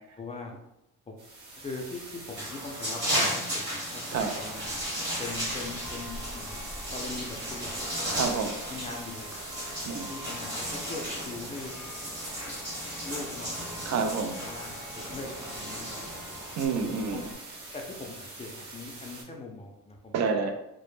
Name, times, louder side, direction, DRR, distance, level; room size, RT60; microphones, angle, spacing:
voice 1, 0.2-0.5 1.1-1.2 1.6-4.7 5.2-6.6 6.9-8.2 8.7-9.3 10.1-11.7 13.0-14.1 14.4-14.8 15.1-16.4 17.1-17.3 17.7-20.5, left 3 dB, 20° left, 1 dB, 0.4 m, -41 dB
sound 1, 1.2-19.2, right 2 dB, 75° right, 1.0 m, -45 dB
sound 2, 2.3-16.7, equal, 40° right, 1.0 m, -35 dB
Church bell, 4.1-17.4, left 1 dB, 5° right, 0.7 m, -46 dB
voice 2, 8.1-8.6 9.9-10.1 13.8-14.4 16.6-17.2 20.1-20.5, right 5 dB, 60° right, 5 dB, 0.4 m, -28 dB
2.1 x 2.0 x 3.1 m, 0.87 s
cardioid pair, 90°, 30 cm